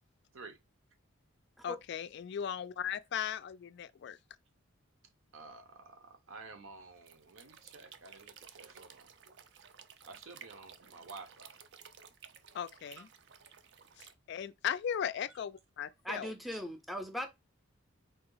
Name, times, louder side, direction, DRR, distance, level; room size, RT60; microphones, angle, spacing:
voice 1, 1.6-4.2 12.5-13.1 14.0-16.3, left 8 dB, 55° left, 0.3 m, -37 dB
voice 2, 5.3-9.1 9.5-9.7 10.0-11.6 12.9-13.1 16.2-16.6, right 4 dB, 75° right, 0.9 m, -52 dB
sound 1, 7.0-14.1, right 7 dB, 55° right, 0.5 m, -55 dB
voice 3, 16.0-17.3, equal, ahead, 0.5 m, -39 dB
4.2 x 2.9 x 3.9 m
head